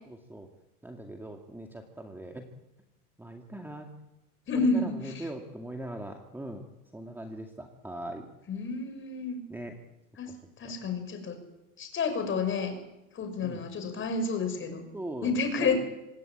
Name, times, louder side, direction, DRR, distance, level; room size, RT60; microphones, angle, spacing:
voice 1, 0.1-0.5 0.8-2.5 3.2-3.9 4.5-6.7 6.9-8.3 9.5-9.7 10.3-10.4 10.6-10.7 13.4-13.6 14.9-15.8, right 1 dB, 5° right, 3 dB, 2.3 m, -40 dB
voice 2, 4.5-5.3 8.5-9.4 10.2-10.3 10.6-11.4 11.8-12.8 13.1-14.9 15.2-15.8, left 4 dB, 25° left, 6 dB, 6.4 m, -30 dB
26.5 x 19.0 x 9.0 m, 0.98 s
supercardioid pair, 135°, 44 cm